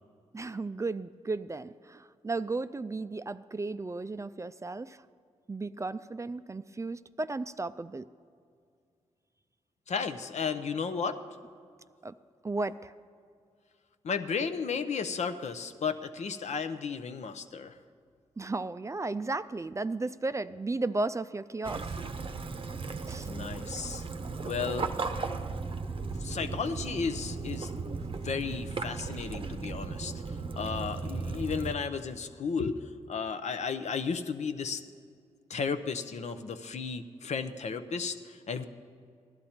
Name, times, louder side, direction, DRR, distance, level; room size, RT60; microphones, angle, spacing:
voice 1, 0.3-5.0 5.5-8.1 12.0-12.1 12.4-12.9 18.4-21.9 23.1-23.3, right 3 dB, 25° right, 13 dB, 0.4 m, -34 dB
voice 2, 9.9-11.2 14.0-17.8 23.2-24.0 24.4-24.9 26.2-27.7 28.2-34.8 35.5-38.6, left 5 dB, 65° left, 9 dB, 0.7 m, -34 dB
Waves surf / Splash splatter / Trickle dribble, 21.6-31.7, right 4 dB, 45° right, 0.7 m, -36 dB
16.0 x 11.5 x 4.3 m, 2.2 s
supercardioid pair, 45°, 13 cm